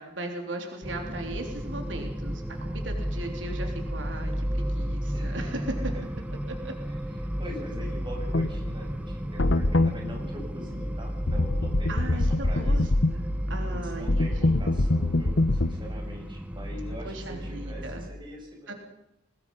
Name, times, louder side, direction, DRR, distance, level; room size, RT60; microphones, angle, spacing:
voice 1, 0.0-5.9 6.5-6.7 11.9-14.5 17.0-18.1 18.7-18.8, right 2 dB, 90° right, 3 dB, 3.4 m, -38 dB
sound 1, 0.8-18.1, equal, 5° right, 1.3 m, -33 dB
voice 2, 5.1-5.5 5.9-6.0 6.9-12.9 13.7-18.8, left 1 dB, 25° right, 0 dB, 6.7 m, -43 dB
sound 2, 8.3-8.5 9.4-9.9 11.3-13.1 14.1-15.7, left 2 dB, 70° left, 1.2 m, -23 dB
23.0 x 20.5 x 5.5 m, 0.85 s
head